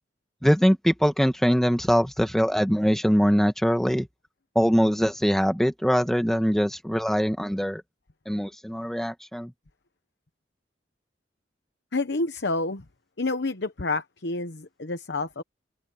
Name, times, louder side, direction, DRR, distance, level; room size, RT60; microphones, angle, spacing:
voice 1, 0.4-4.1 4.6-7.8 8.3-9.5, equal, ahead, 1.7 m, -22 dB
voice 2, 11.9-12.8 13.2-15.4, left 3 dB, 65° left, 1.0 m, -29 dB
open air
head